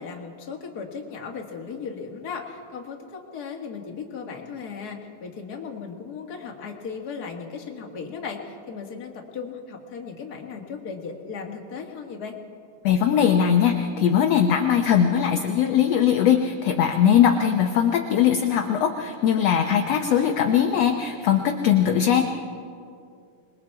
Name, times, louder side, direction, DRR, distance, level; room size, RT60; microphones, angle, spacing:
voice 1, 0.0-12.4, left 5 dB, 35° left, 1 dB, 1.9 m, -36 dB
voice 2, 12.8-22.2, left 9 dB, 70° left, 4 dB, 1.6 m, -20 dB
26.5 x 21.5 x 4.7 m, 2.4 s
omnidirectional pair, 3.9 m